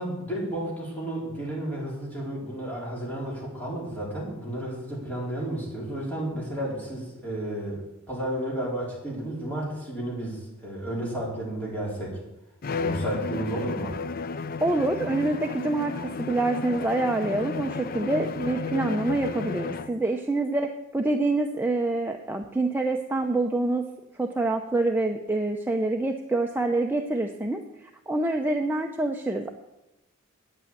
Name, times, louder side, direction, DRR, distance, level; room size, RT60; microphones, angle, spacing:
voice 1, 0.0-7.8 8.1-12.2 12.8-14.0, right 1 dB, 10° left, -5 dB, 4.4 m, -32 dB
Bowed string instrument, 12.6-20.0, left 4 dB, 45° left, 0.5 m, -33 dB
voice 2, 14.6-23.9 24.2-29.5, right 2 dB, 10° right, 2 dB, 0.6 m, -26 dB
9.4 x 8.4 x 8.7 m, 0.94 s
head